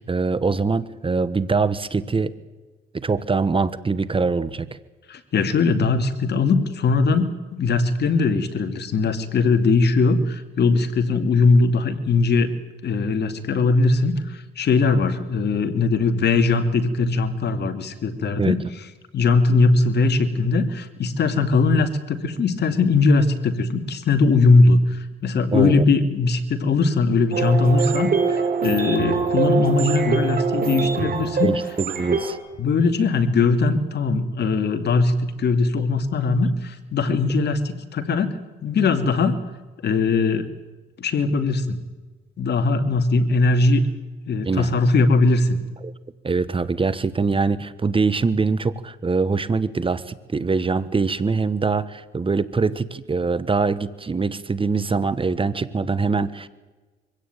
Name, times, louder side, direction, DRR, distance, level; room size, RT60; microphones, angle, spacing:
voice 1, 0.0-2.3 2.9-4.7 18.4-18.6 25.5-25.8 31.4-32.4 44.4-44.7 45.8-45.9 46.2-56.5, right 4 dB, 25° right, 15 dB, 1.3 m, -23 dB
voice 2, 5.1-12.5 12.8-18.6 19.1-31.5 32.6-39.3 39.8-40.5 41.0-41.8 42.4-43.8 44.3-45.6, left 3 dB, 60° left, 8 dB, 2.7 m, -20 dB
sound 1, 27.3-32.3, right 5 dB, 50° right, 5.1 m, -23 dB
24.5 x 16.5 x 9.2 m, 1.2 s
cardioid pair, 90°, 20 cm